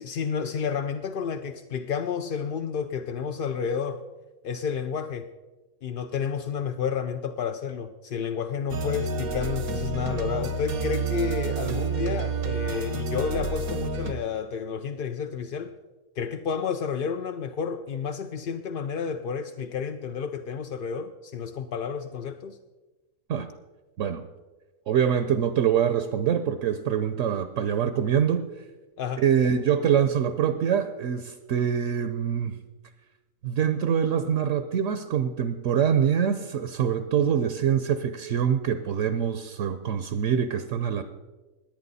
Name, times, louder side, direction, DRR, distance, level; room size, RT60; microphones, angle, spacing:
voice 1, 0.0-4.0 4.4-5.3 5.8-15.7 16.2-22.6 29.0-29.2, left 6 dB, 60° left, 7 dB, 0.5 m, -31 dB
sound 1, 8.7-14.1, right 4 dB, 90° right, 1.5 m, -29 dB
voice 2, 24.9-28.5 29.2-32.6 33.4-41.0, right 8 dB, 65° right, 10 dB, 1.0 m, -24 dB
20.5 x 8.6 x 4.1 m, 1.2 s
omnidirectional pair, 1.5 m